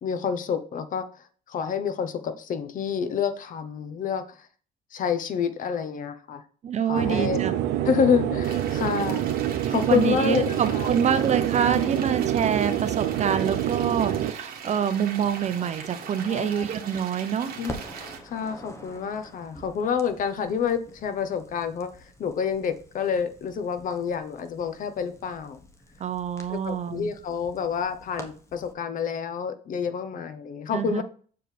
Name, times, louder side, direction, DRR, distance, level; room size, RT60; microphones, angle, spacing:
voice 1, 0.0-1.0 1.5-4.2 4.9-6.4 6.9-7.4 7.8-11.0 16.3-16.7 17.6-17.7 18.0-21.9 22.2-25.6 26.5-31.0, left 7 dB, 50° left, 11 dB, 0.9 m, -28 dB
voice 2, 6.6-7.5 9.6-17.6 26.0-27.1 30.7-31.0, right 8 dB, 40° right, 11 dB, 0.8 m, -26 dB
sound 1, 6.9-14.3, right 11 dB, 85° right, 0.7 m, -26 dB
sound 2, 8.4-18.2, right 6 dB, 60° right, 1.6 m, -40 dB
Crackle, 14.9-17.1 17.4-28.7, equal, 15° left, 1.2 m, -47 dB
7.6 x 4.6 x 3.4 m, 0.43 s
cardioid pair, 110°, 17 cm